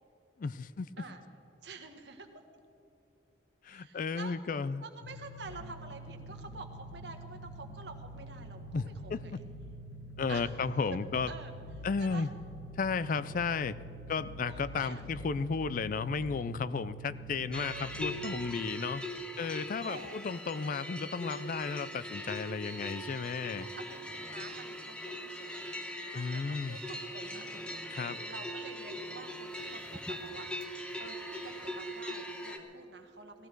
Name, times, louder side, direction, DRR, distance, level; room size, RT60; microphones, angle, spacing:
voice 1, 0.4-0.9 3.6-4.8 8.7-9.4 10.2-11.3 11.8-12.3 12.8-13.8 14.1-19.1 19.4-23.7 26.1-26.8 27.9-28.2, left 5 dB, 45° left, 16 dB, 0.4 m, -34 dB
voice 2, 1.6-2.3 3.7-4.4 4.8-9.4 10.3-10.5 11.3-11.5 12.0-12.3 14.4-15.0 17.6-18.0 19.8-20.2 23.6-25.9 26.1-33.5, right 3 dB, 65° right, 5 dB, 1.4 m, -48 dB
sound 1, 5.0-18.5, right 1 dB, 70° left, 0.9 m, -46 dB
sound 2, 17.5-32.6, equal, 5° left, 0.9 m, -41 dB
18.5 x 15.0 x 4.5 m, 2.8 s
head